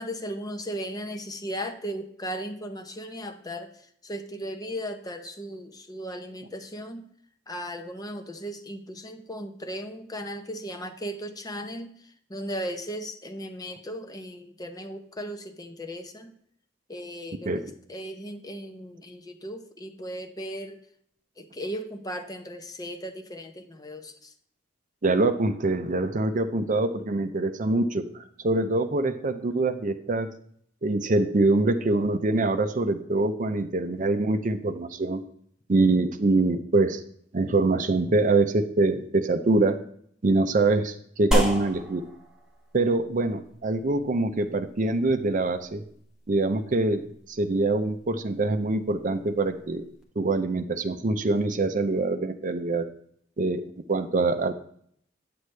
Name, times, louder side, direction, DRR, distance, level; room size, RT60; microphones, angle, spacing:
voice 1, 0.0-7.0 7.5-16.3 16.9-20.8 21.4-24.3, equal, 20° left, 6 dB, 0.8 m, -37 dB
voice 2, 25.0-30.3 30.8-35.2 35.7-37.0 37.3-39.8 40.2-42.0 42.7-45.8 46.3-49.8 50.2-52.9 53.4-53.6 53.9-54.5, right 2 dB, 45° right, 9 dB, 0.6 m, -24 dB
sound 1, 41.3-50.0, equal, 5° right, 1.5 m, -34 dB
9.2 x 7.8 x 3.3 m, 0.65 s
head